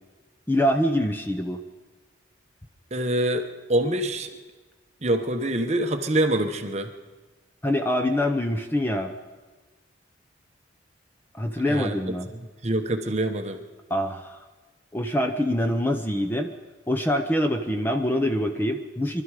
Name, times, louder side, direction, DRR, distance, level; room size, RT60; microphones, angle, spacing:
voice 1, 0.5-1.6 7.6-9.1 11.3-12.3 13.9-14.4 14.9-16.5 16.9-19.2, left 1 dB, 10° left, 6 dB, 0.7 m, -25 dB
voice 2, 2.9-4.3 5.0-6.9 11.7-12.0 12.6-13.6, right 1 dB, 35° right, 6 dB, 1.0 m, -25 dB
24.0 x 12.5 x 4.9 m, 1.3 s
head